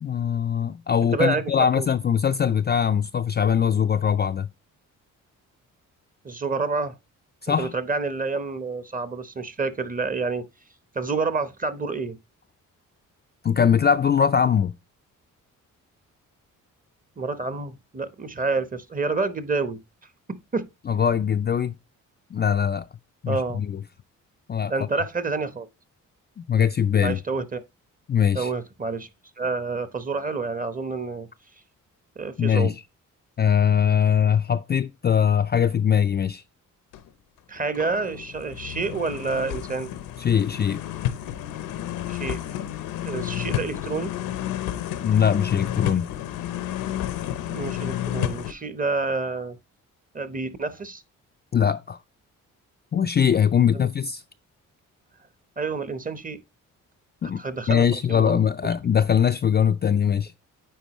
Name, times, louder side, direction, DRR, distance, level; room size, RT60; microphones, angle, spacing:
voice 1, 0.0-4.5 7.4-7.7 13.4-14.7 20.9-21.7 22.3-22.9 23.2-23.8 24.5-24.7 26.4-27.2 28.1-28.5 32.4-32.7 33.4-36.4 40.2-40.8 45.0-46.1 51.5-52.0 52.9-54.2 57.2-57.4 57.7-60.4, left 8 dB, 30° left, 0.4 m, -21 dB
voice 2, 1.1-1.9 6.2-6.9 7.5-10.5 10.9-12.2 17.2-19.8 20.3-20.7 23.3-23.6 24.7-25.7 27.0-27.6 28.3-29.1 29.4-31.3 32.2-32.7 37.5-39.9 42.1-42.4 43.0-44.1 47.5-49.6 50.1-51.0 53.7-53.9 55.6-56.4 57.4-58.4, right 4 dB, 25° right, 0.9 m, -28 dB
sound 1, 36.9-37.1 37.6-48.5, left 12 dB, 90° left, 0.8 m, -31 dB
9.2 x 4.1 x 3.0 m
cardioid pair, 75°, 33 cm